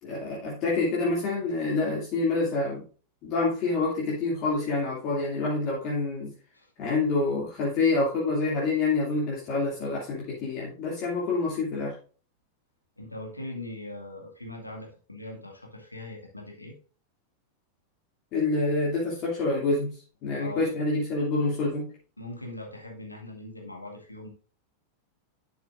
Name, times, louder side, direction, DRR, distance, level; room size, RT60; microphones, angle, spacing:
voice 1, 0.0-2.8 3.2-6.3 6.8-11.9 18.3-21.9, left 3 dB, 40° left, -5 dB, 2.6 m, -27 dB
voice 2, 13.0-16.7 20.4-20.8 22.2-24.3, left 1 dB, 85° left, 0 dB, 2.1 m, -41 dB
11.5 x 6.7 x 2.5 m, 0.39 s
figure-of-eight pair, 90°, 0 cm